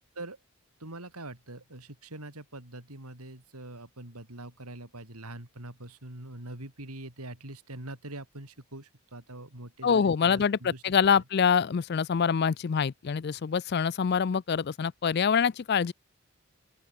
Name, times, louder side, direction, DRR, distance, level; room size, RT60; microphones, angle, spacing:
voice 1, 0.8-10.8, right 1 dB, 90° right, 4.7 m, -43 dB
voice 2, 9.8-15.9, left 6 dB, 45° left, 0.4 m, -25 dB
open air
head